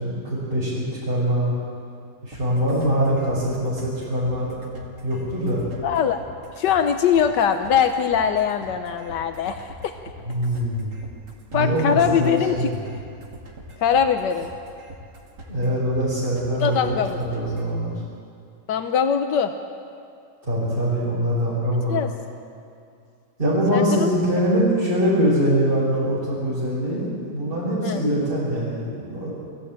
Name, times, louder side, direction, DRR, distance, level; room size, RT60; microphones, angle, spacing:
voice 1, 0.0-1.5 2.2-4.5 5.0-5.6 10.3-10.9 11.5-12.8 15.5-18.0 20.4-22.0 23.4-29.3, equal, 30° right, -9 dB, 5.7 m, -23 dB
sound 1, 2.3-17.7, right 1 dB, 75° right, 3.2 m, -43 dB
voice 2, 5.8-6.2 6.6-9.9 11.5-12.7 13.8-14.5 16.6-17.2 18.7-19.5 21.9-22.1 23.7-24.1 27.8-28.0, left 7 dB, 85° left, 7 dB, 1.5 m, -22 dB
22.0 x 15.0 x 8.8 m, 2.4 s
omnidirectional pair, 1.8 m